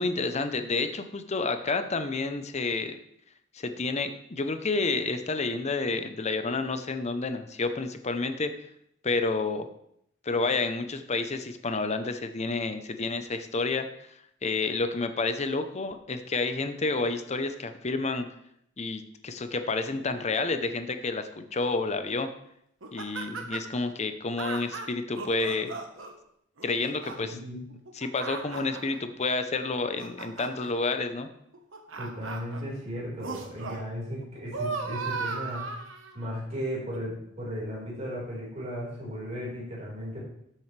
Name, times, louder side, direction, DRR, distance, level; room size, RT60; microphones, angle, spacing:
voice 1, 0.0-3.0 3.5-8.5 9.0-9.7 10.2-14.1 14.4-18.3 18.8-22.3 22.9-25.8 26.6-27.4 28.0-31.3, left 3 dB, 35° left, 9 dB, 0.8 m, -29 dB
sound 1, 22.8-23.8 24.4-26.1 26.6-27.2 27.7-29.0 29.6-30.7 31.5-32.6 33.2-33.8 34.2-36.3 36.9-37.0, right 4 dB, 75° right, 1.3 m, -36 dB
voice 2, 27.2-27.6 32.0-35.6 36.1-40.2, equal, 35° right, -6 dB, 4.7 m, -35 dB
13.0 x 7.6 x 3.4 m, 0.74 s
head